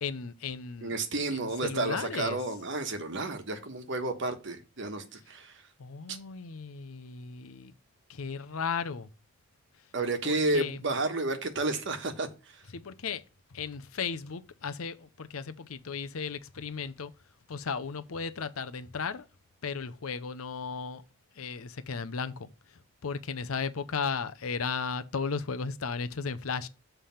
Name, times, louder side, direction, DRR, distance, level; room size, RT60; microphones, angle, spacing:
voice 1, 0.0-0.9 1.3-2.4 5.8-7.7 8.1-9.1 10.2-10.8 12.7-13.2 13.5-17.1 17.5-19.3 19.6-21.0 21.4-26.7, left 5 dB, 75° left, 0.6 m, -35 dB
voice 2, 0.8-5.6 6.1-6.2 9.9-12.6, right 2 dB, 55° right, 1.2 m, -31 dB
7.4 x 3.4 x 5.6 m
head